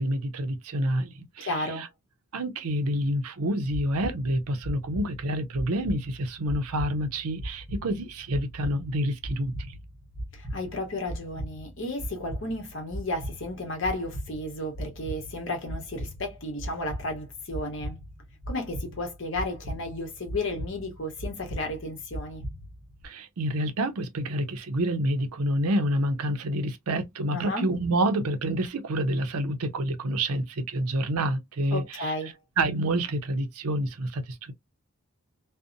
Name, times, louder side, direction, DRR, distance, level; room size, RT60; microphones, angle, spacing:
voice 1, 0.0-1.9 2.3-9.8 23.0-32.1 32.6-34.5, right 1 dB, 90° right, 0.5 m, -28 dB
voice 2, 1.4-1.9 10.3-18.0 18.5-22.4 27.3-27.7 31.7-32.3, left 1 dB, 60° left, 0.9 m, -33 dB
sound 1, 3.7-23.1, equal, 10° right, 0.9 m, -39 dB
2.6 x 2.1 x 2.5 m
head